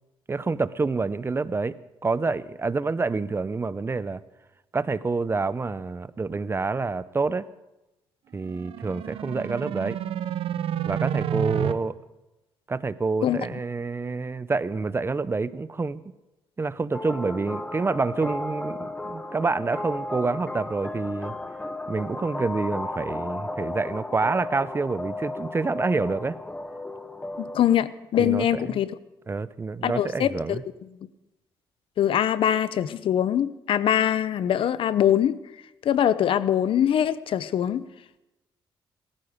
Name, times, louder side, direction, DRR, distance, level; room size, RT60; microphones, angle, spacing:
voice 1, 0.3-1.8 2.0-4.2 4.7-7.5 8.3-10.0 10.8-12.0 12.7-16.0 16.6-21.3 21.9-26.4 28.2-28.8 29.3-30.6, right 4 dB, 25° right, 16 dB, 0.6 m, -27 dB
sound 1, 8.4-11.7, right 10 dB, 75° right, 0.8 m, -29 dB
sound 2, 16.9-27.6, left 2 dB, 10° left, 1.0 m, -34 dB
voice 2, 27.4-28.9 29.8-30.6 32.0-35.4 35.8-37.8, left 10 dB, 65° left, 16 dB, 0.7 m, -23 dB
18.5 x 14.0 x 5.1 m, 0.98 s
cardioid pair, 90°, 10 cm